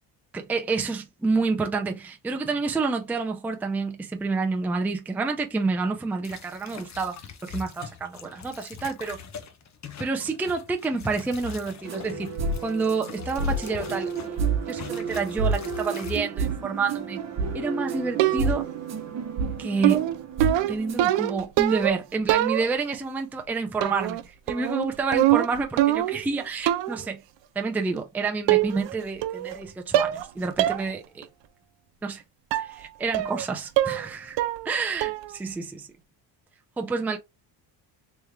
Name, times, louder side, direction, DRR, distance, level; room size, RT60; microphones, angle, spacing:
voice 1, 0.3-7.2 7.4-9.2 10.0-14.4 14.7-17.2 17.5-18.7 19.6-20.0 20.7-27.2 27.6-31.3 32.0-32.2 32.5-34.4 34.6-35.9 36.8-37.2, right 4 dB, 5° right, 0.4 m, -29 dB
sound 1, 6.2-14.4 14.7-16.2, left 6 dB, 35° left, 0.7 m, -42 dB
sound 2, 11.8-21.2, right 4 dB, 35° right, 1.0 m, -30 dB
sound 3, 18.2-18.7 19.8-22.0 22.3-22.9 23.8-24.2 24.5-26.3 26.7-27.0 28.0-28.1 28.5-28.9 29.2-29.6 29.9-30.3 30.6-30.8 31.2-31.3 32.5-32.7 33.1-33.4 33.8-34.1 34.4-34.7 35.0-35.3, right 14 dB, 65° right, 0.6 m, -24 dB
3.4 x 3.2 x 3.2 m
cardioid pair, 120°, 47 cm